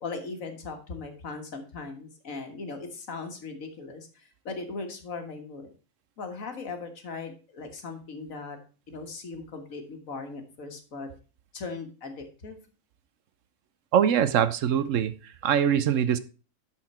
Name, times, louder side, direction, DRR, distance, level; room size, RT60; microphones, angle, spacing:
voice 1, 0.0-5.7 6.2-8.6 8.9-11.1 11.5-12.6, left 4 dB, 75° left, 1.8 m, -38 dB
voice 2, 13.9-16.2, right 9 dB, 70° right, 1.0 m, -23 dB
11.5 x 4.5 x 4.3 m
omnidirectional pair, 1.4 m